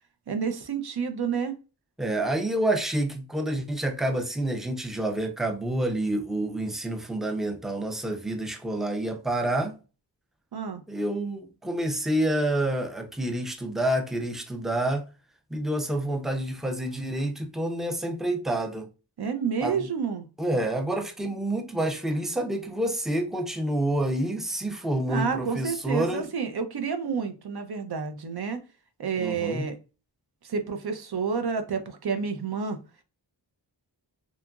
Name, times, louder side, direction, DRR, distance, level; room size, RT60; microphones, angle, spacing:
voice 1, 0.3-1.5 10.5-10.8 19.2-20.3 25.1-28.6 29.0-29.8 30.4-32.8, right 6 dB, 60° right, 0.6 m, -29 dB
voice 2, 2.0-9.7 10.9-15.0 15.5-18.9 19.6-19.9 20.4-26.2 29.2-29.7, right 1 dB, ahead, 0.4 m, -28 dB
2.9 x 2.4 x 2.3 m
wide cardioid pair, 45°, 44 cm